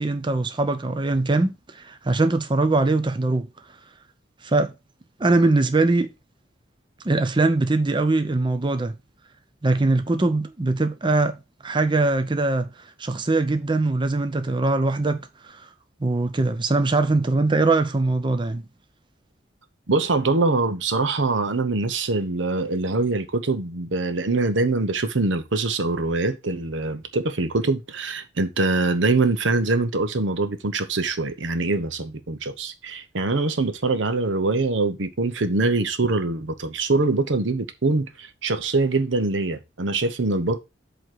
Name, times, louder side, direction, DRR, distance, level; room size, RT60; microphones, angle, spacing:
voice 1, 0.0-3.5 4.4-4.7 5.2-6.1 7.0-8.9 9.6-11.4 11.6-12.7 13.0-15.2 16.0-18.6, right 2 dB, 25° right, 0.6 m, -21 dB
voice 2, 19.9-40.6, right 3 dB, 80° right, 0.9 m, -23 dB
7.8 x 3.0 x 6.1 m
head